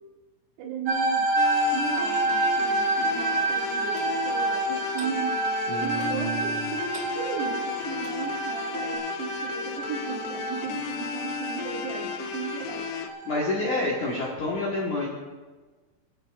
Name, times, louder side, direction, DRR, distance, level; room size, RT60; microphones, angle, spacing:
voice 1, 0.6-1.3 1.7-5.4 5.8-12.9, right 6 dB, 85° right, 0 dB, 3.6 m, -36 dB
sound 1, 0.9-14.3, right 2 dB, 60° right, 2.1 m, -29 dB
sound 2, 1.4-13.1, left 8 dB, 85° left, 2.7 m, -35 dB
Clock, 4.0-4.1 5.0-5.2 6.0-6.3 6.9-7.2 8.0-8.3 9.0-9.1, right 2 dB, 35° right, 2.4 m, -43 dB
voice 2, 5.7-6.7 13.3-15.1, left 1 dB, 60° left, -5 dB, 2.4 m, -28 dB
23.5 x 8.1 x 2.5 m, 1.3 s
omnidirectional pair, 4.7 m